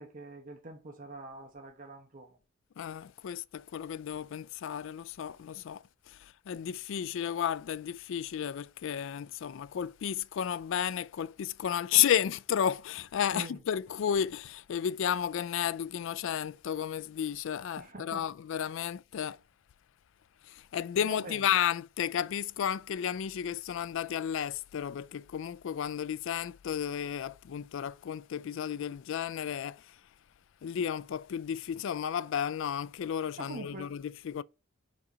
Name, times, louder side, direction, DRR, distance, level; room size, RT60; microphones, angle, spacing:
voice 1, 0.0-2.4 13.3-13.6 17.8-18.3 21.0-21.4 33.4-33.9, right 2 dB, 45° right, 1.0 m, -44 dB
voice 2, 2.8-19.4 20.4-30.0 30.6-34.4, left 9 dB, 65° left, 0.3 m, -33 dB
4.9 x 4.1 x 5.9 m
head